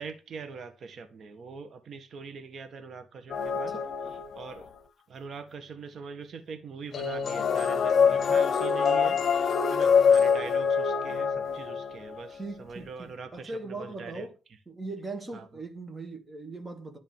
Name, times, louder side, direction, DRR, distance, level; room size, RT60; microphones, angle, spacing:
voice 1, 0.0-3.7 4.3-4.7 5.1-14.3 15.3-15.6, right 5 dB, 55° right, 1.6 m, -43 dB
sound 1, 3.3-4.6 6.9-12.2, left 6 dB, 55° left, 1.0 m, -25 dB
voice 2, 12.3-14.3 14.7-17.0, right 2 dB, 25° right, 2.5 m, -40 dB
11.0 x 4.1 x 7.2 m
cardioid pair, 90°, 0 cm